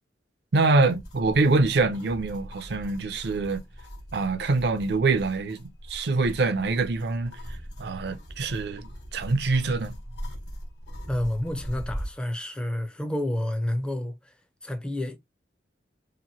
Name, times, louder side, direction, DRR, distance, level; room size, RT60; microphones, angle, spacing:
voice 1, 0.5-3.6 4.1-7.3 7.8-10.0, right 3 dB, 65° right, 0.5 m, -25 dB
sound 1, 0.8-12.2, equal, 65° left, 1.1 m, -40 dB
voice 2, 11.1-14.3 14.6-15.2, left 1 dB, 5° left, 0.4 m, -29 dB
2.9 x 2.5 x 2.6 m
head